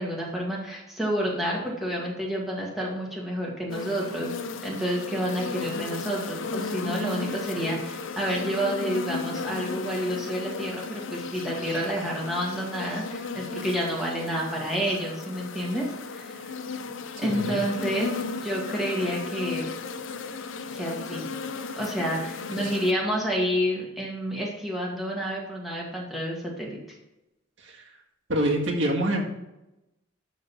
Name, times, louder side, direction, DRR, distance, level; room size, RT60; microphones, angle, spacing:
voice 1, 0.0-4.3 4.6-15.8 16.1-16.5 17.2-18.1 18.4-19.6 20.7-21.3 21.8-26.8, equal, ahead, -4 dB, 2.0 m, -29 dB
sound 1, 3.7-22.9, left 4 dB, 80° left, 0.6 m, -35 dB
voice 2, 17.2-17.6 22.6-22.7 27.6-27.8 28.3-29.2, right 1 dB, 75° right, -1 dB, 1.8 m, -26 dB
12.0 x 4.0 x 5.5 m, 0.91 s
head